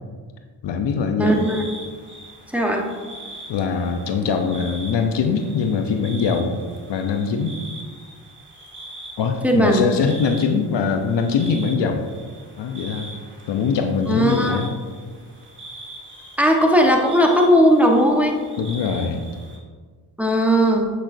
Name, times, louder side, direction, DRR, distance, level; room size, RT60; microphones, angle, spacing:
voice 1, 0.6-1.4 3.5-6.6 6.9-7.6 9.2-12.1 12.6-13.1 13.5-14.8 18.6-19.3, left 5 dB, 65° left, 5 dB, 0.8 m, -22 dB
voice 2, 1.2-1.6 2.5-2.8 9.4-9.9 14.1-14.6 16.4-18.3 20.2-20.8, equal, 5° right, 0 dB, 1.3 m, -17 dB
sound 1, 1.2-19.6, right 2 dB, 25° right, 2.1 m, -42 dB
8.5 x 6.3 x 2.7 m, 1.5 s
supercardioid pair, 50°, 47 cm